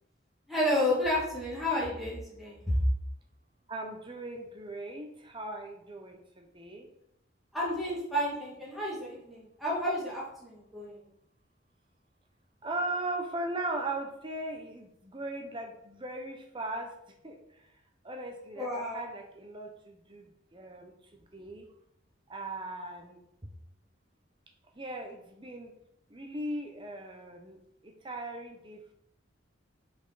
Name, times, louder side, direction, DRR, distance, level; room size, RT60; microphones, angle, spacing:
voice 1, 0.5-2.8 7.5-11.0 18.6-19.0, left 1 dB, ahead, -7 dB, 2.0 m, -31 dB
voice 2, 3.7-6.9 12.6-16.9 17.2-17.7 18.0-21.7 22.3-23.2 24.7-25.7 26.1-28.9, right 2 dB, 25° right, 3 dB, 0.9 m, -38 dB
5.1 x 4.7 x 4.1 m, 0.77 s
head